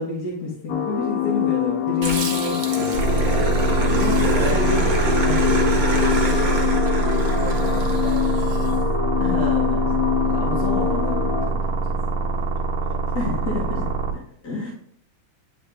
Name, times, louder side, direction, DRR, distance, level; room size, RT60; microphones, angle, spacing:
voice 1, 0.0-3.6 4.0-4.6 9.2-10.0 10.2-11.6 13.1-13.9 14.4-14.7, left 2 dB, 55° left, -4 dB, 1.8 m, -29 dB
sound 1, 0.7-11.5, left 12 dB, 70° left, 1.3 m, -25 dB
Growling, 2.0-8.7, right 2 dB, 65° right, 0.4 m, -27 dB
sound 2, 2.9-14.1, right 3 dB, 80° right, 1.6 m, -23 dB
voice 2, 3.7-5.9 6.5-8.6 9.1-10.1 12.4-12.5 13.5-13.8, left 2 dB, 30° left, -2 dB, 1.8 m, -35 dB
9.5 x 3.3 x 3.4 m, 0.63 s
omnidirectional pair, 2.1 m